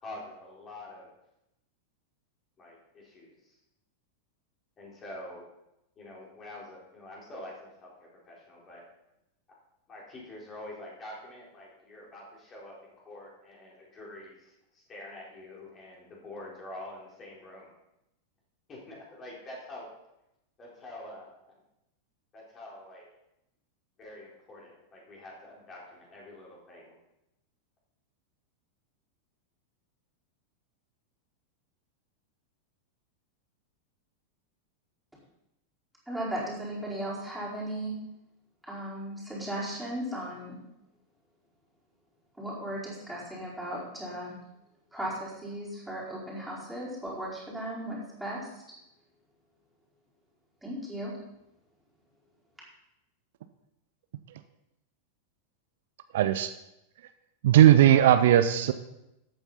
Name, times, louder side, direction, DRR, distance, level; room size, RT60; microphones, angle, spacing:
voice 1, 0.0-1.1 2.6-3.3 4.8-5.4 6.0-8.8 9.9-17.7 18.7-19.9 20.6-21.3 22.3-23.0 24.0-26.9, left 1 dB, 25° left, -4 dB, 4.3 m, -46 dB
voice 2, 36.1-37.9 38.7-40.6 42.4-44.4 44.9-48.6 50.6-51.1, right 1 dB, ahead, -7 dB, 4.8 m, -36 dB
voice 3, 56.1-56.5 57.4-58.7, right 11 dB, 55° right, 11 dB, 0.6 m, -18 dB
13.0 x 9.0 x 4.2 m, 0.88 s
figure-of-eight pair, 90°, 0 cm